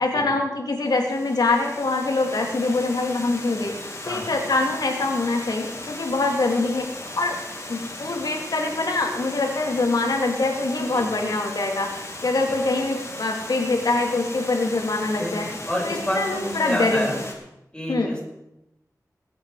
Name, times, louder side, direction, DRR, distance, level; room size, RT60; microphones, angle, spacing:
voice 1, 0.0-3.7 4.1-6.9 7.2-7.3 7.7-11.9 12.2-15.5 15.8-17.2 17.9-18.1, left 3 dB, 90° left, 2 dB, 2.5 m, -24 dB
Water, 0.8-17.3, left 2 dB, 45° left, 3.0 m, -37 dB
voice 2, 15.2-17.2 17.7-18.2, left 1 dB, 10° left, -3 dB, 5.6 m, -28 dB
20.5 x 8.8 x 4.9 m, 0.89 s
wide cardioid pair, 70°, 7 cm